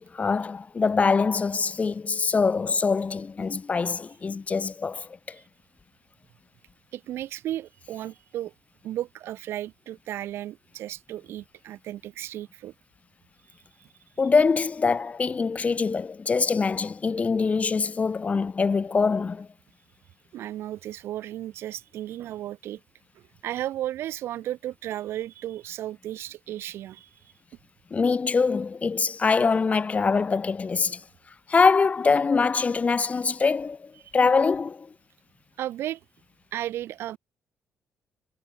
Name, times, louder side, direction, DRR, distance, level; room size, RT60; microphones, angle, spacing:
voice 1, 0.0-5.4 14.2-19.5 27.9-31.0 31.5-34.9, left 4 dB, 35° left, 2.4 m, -24 dB
voice 2, 6.9-8.5 8.8-12.7 13.8-13.9 20.3-22.8 23.1-27.3 35.6-36.0 36.5-37.2, right 13 dB, 80° right, 1.3 m, -34 dB
cardioid pair, 85°, 4 cm